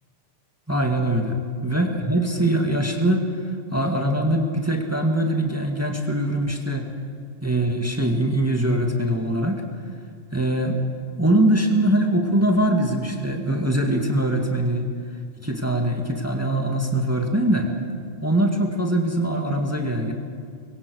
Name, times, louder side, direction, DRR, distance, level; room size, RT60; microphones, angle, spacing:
voice 1, 0.7-6.9 7.4-9.6 10.3-10.8 11.2-14.9 15.4-17.7 18.2-20.1, right 1 dB, 10° right, 2 dB, 2.0 m, -22 dB
25.5 x 22.5 x 6.4 m, 2.3 s
omnidirectional pair, 1.2 m